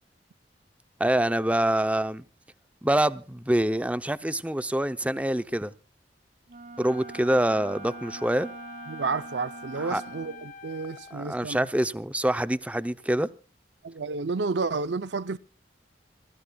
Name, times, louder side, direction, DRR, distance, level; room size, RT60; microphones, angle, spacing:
voice 1, 1.0-2.2 2.8-5.7 6.8-8.5 9.8-10.0 11.1-13.3, right 1 dB, 10° right, 0.7 m, -25 dB
Wind instrument woodwind instrument, 6.5-10.5, right 3 dB, 45° right, 1.0 m, -43 dB
Wind instrument woodwind instrument 2, 6.8-11.3, left 5 dB, 50° left, 1.8 m, -47 dB
voice 2, 8.9-11.7 13.8-15.4, right 4 dB, 80° right, 0.6 m, -31 dB
26.0 x 16.0 x 2.4 m
head